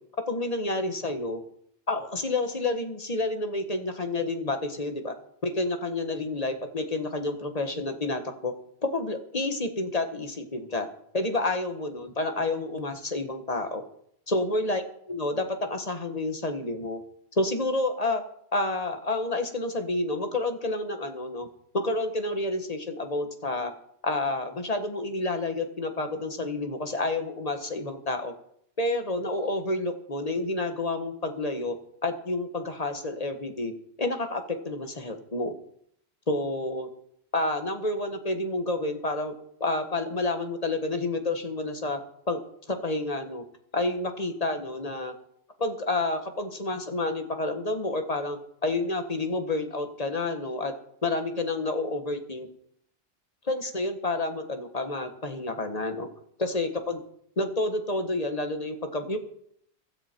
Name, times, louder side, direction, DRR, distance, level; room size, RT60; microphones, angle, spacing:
voice 1, 0.3-1.4 1.9-5.1 5.4-8.5 8.8-10.9 11.1-13.8 14.3-14.8 15.1-17.0 17.4-18.2 18.5-21.5 21.7-23.7 24.0-28.3 28.8-31.8 32.0-33.7 34.0-35.5 36.3-36.9 37.3-39.3 39.6-42.0 42.3-42.4 42.7-43.4 43.7-45.1 45.6-50.7 51.0-52.5 53.4-56.1 56.4-57.0 57.4-59.2, left 2 dB, 35° left, 6 dB, 1.5 m, -29 dB
16.0 x 12.5 x 4.5 m, 0.69 s
omnidirectional pair, 1.1 m